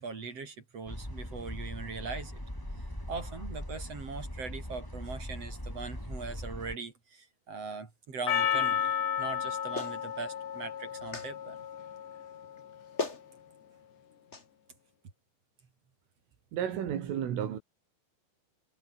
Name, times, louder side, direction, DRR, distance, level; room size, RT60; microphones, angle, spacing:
voice 1, 0.0-2.4 2.8-8.9 9.2-11.6, right 4 dB, 35° right, 3.7 m, -41 dB
sound 1, 0.9-6.8, left 1 dB, 5° left, 5.5 m, -40 dB
Percussion, 8.3-12.8, left 9 dB, 65° left, 5.1 m, -33 dB
Clapping, 9.8-10.0 11.1-11.3 12.6-12.7 13.0-13.2 14.3-14.5, left 3 dB, 20° left, 1.9 m, -35 dB
voice 2, 16.5-17.6, right 9 dB, 85° right, 5.7 m, -32 dB
omnidirectional pair, 5.6 m